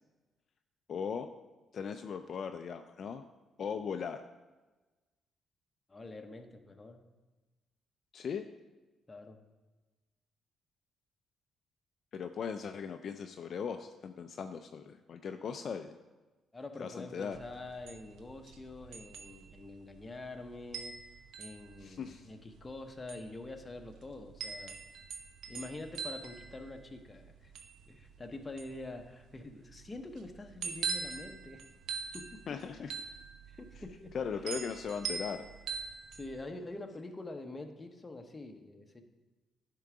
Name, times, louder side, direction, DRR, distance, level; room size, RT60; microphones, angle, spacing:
voice 1, 0.9-1.3 1.7-3.2 3.6-4.2 8.1-8.5 12.1-15.9 16.8-17.4 21.8-22.3 32.5-32.9 34.1-35.5, left 6 dB, 55° left, 7 dB, 0.4 m, -38 dB
voice 2, 5.9-7.0 9.1-9.4 16.5-21.0 21.4-24.8 25.5-27.5 27.9-31.6 32.1-32.6 33.5-34.2 36.1-39.0, left 2 dB, 25° left, 5 dB, 0.8 m, -46 dB
sound 1, 17.3-36.4, right 6 dB, 75° right, 0.7 m, -43 dB
10.5 x 3.8 x 4.8 m, 1.2 s
cardioid pair, 90°, 0 cm